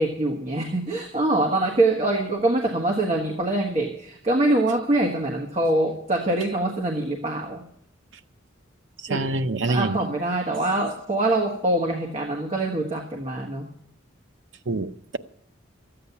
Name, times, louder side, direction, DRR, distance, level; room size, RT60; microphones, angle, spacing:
voice 1, 0.0-7.6 9.1-9.3 9.7-13.6, right 2 dB, 35° right, 1.5 m, -24 dB
voice 2, 9.1-10.0 14.7-15.2, right 2 dB, 75° right, 0.7 m, -25 dB
13.5 x 8.9 x 6.8 m
head